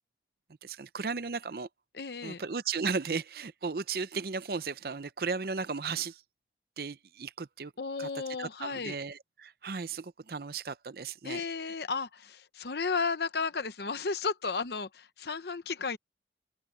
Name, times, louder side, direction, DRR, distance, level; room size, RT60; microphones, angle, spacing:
voice 1, 0.6-1.7 2.2-6.2 6.8-7.7 8.0-8.1 8.4-11.4, right 5 dB, 55° right, 0.6 m, -35 dB
voice 2, 1.9-2.4 7.8-8.9 11.2-16.0, left 4 dB, 65° left, 0.8 m, -33 dB
head